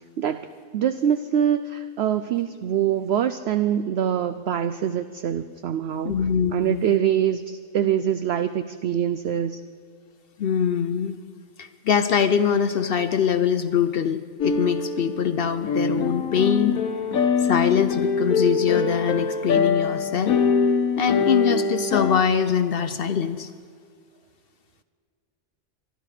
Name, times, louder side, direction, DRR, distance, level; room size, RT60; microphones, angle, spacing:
voice 1, 0.7-6.2 6.5-9.6, right 9 dB, 65° right, 11 dB, 0.7 m, -24 dB
voice 2, 6.0-6.9 10.4-11.2 11.6-16.8 17.4-20.4 21.0-23.5, left 8 dB, 60° left, 10 dB, 0.6 m, -23 dB
sound 1, 14.4-22.2, left 5 dB, 80° left, 1.3 m, -24 dB
24.5 x 11.5 x 5.0 m, 2.1 s
omnidirectional pair, 1.5 m